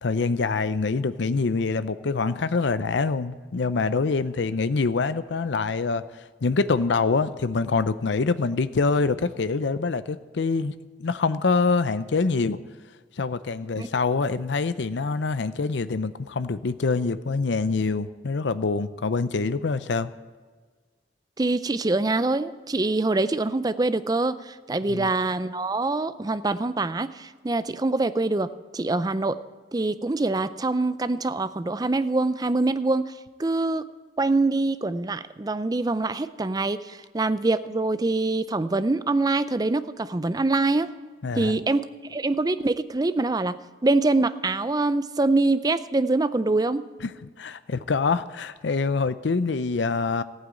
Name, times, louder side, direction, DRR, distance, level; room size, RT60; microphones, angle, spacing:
voice 1, 0.0-6.0 6.4-10.7 11.0-12.6 13.2-20.1 24.9-25.1 41.2-41.5 47.0-47.1 47.4-50.2, left 4 dB, 70° left, 14 dB, 0.5 m, -25 dB
voice 2, 21.4-28.5 28.7-29.4 29.7-33.1 33.4-33.8 34.2-40.9 41.3-46.8, right 2 dB, 20° right, 13 dB, 0.5 m, -24 dB
15.0 x 8.9 x 8.3 m, 1.4 s
head